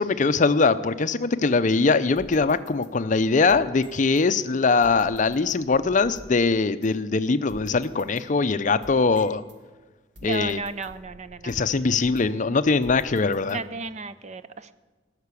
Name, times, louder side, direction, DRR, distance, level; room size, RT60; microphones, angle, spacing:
voice 1, 0.0-9.4 10.2-10.6 11.4-13.6, left 4 dB, 40° left, 13 dB, 0.5 m, -22 dB
sound 1, 2.1-4.3 4.8-6.4 6.8-6.9 7.5-9.6 10.1-12.4 12.8-13.9, equal, 85° right, 2.2 m, -48 dB
voice 2, 10.2-11.5 13.5-14.7, right 3 dB, 35° right, 13 dB, 0.6 m, -34 dB
18.0 x 6.7 x 8.3 m, 1.3 s
head